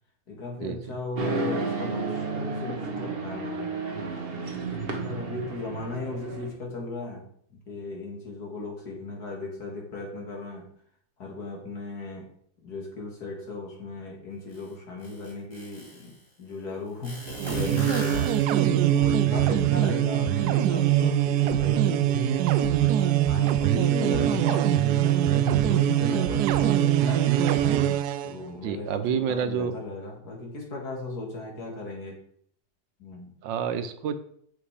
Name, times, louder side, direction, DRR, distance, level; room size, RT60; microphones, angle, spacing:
voice 1, 0.3-3.7 4.3-7.3 7.7-10.7 11.2-12.3 12.6-18.4 18.8-27.3 28.2-32.2 33.0-33.3, left 3 dB, 60° left, -1 dB, 2.7 m, -37 dB
sound 1, 1.1-6.5, right 4 dB, 35° right, 1.3 m, -32 dB
sound 2, 14.5-14.6 15.0-16.1 17.0-18.9, left 1 dB, 20° left, 3.0 m, -38 dB
sound 3, 17.3-28.3, right 11 dB, 70° right, 1.0 m, -23 dB
voice 2, 28.6-29.7 33.4-34.2, right 7 dB, 90° right, 10 dB, 1.5 m, -28 dB
7.9 x 6.6 x 4.9 m, 0.64 s
omnidirectional pair, 2.0 m